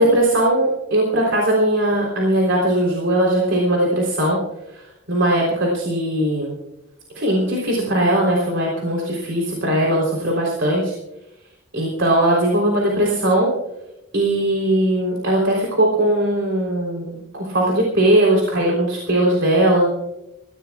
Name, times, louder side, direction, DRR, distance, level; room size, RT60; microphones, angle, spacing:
voice 1, 0.0-4.4 4.7-4.8 5.1-6.5 7.2-10.9 11.7-13.5 14.1-19.9, right 1 dB, 65° right, -3 dB, 3.6 m, -19 dB
26.5 x 16.0 x 2.4 m, 0.91 s
head